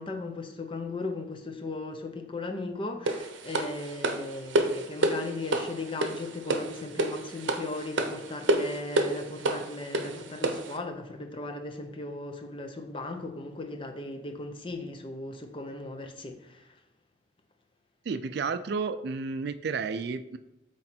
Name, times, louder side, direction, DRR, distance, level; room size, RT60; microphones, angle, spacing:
voice 1, 0.0-16.7, left 2 dB, 25° left, 5 dB, 0.6 m, -37 dB
sound 1, 3.1-10.8, right 2 dB, 80° right, 0.7 m, -29 dB
voice 2, 18.0-20.4, right 5 dB, 55° right, 11 dB, 0.3 m, -31 dB
7.9 x 3.2 x 4.4 m, 0.95 s
head